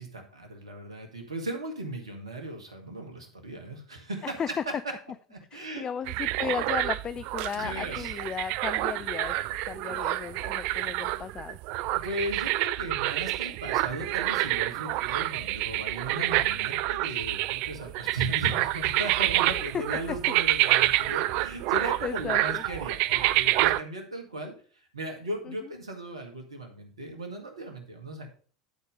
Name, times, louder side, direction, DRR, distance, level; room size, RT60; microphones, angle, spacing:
voice 1, 0.0-4.4 5.3-5.8 7.5-8.1 11.9-24.5 24.9-28.3, right 1 dB, 80° right, 4 dB, 1.7 m, -37 dB
voice 2, 4.2-4.6 5.5-9.4 9.7-11.6 19.5-20.2 20.6-21.0 22.0-22.6 25.5-25.7, left 7 dB, 30° left, 16 dB, 0.3 m, -35 dB
sound 1, 6.1-23.8, right 16 dB, 55° right, 0.3 m, -28 dB
10.5 x 4.3 x 5.3 m, 0.41 s
figure-of-eight pair, 75°, 3 cm